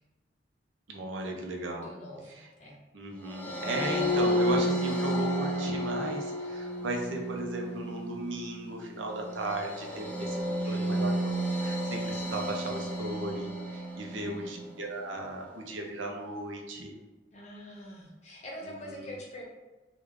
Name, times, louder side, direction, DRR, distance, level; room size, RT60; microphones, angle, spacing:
voice 1, 0.9-1.9 2.3-2.5 2.9-11.1 11.6-17.0 18.6-19.1, right 2 dB, 85° right, 1 dB, 0.6 m, -36 dB
voice 2, 1.7-2.8 10.6-11.1 14.1-14.6 17.3-19.4, equal, 35° left, -3 dB, 0.8 m, -45 dB
sound 1, 3.3-14.6, equal, 10° left, 0.5 m, -32 dB
3.5 x 2.3 x 3.1 m, 1.2 s
head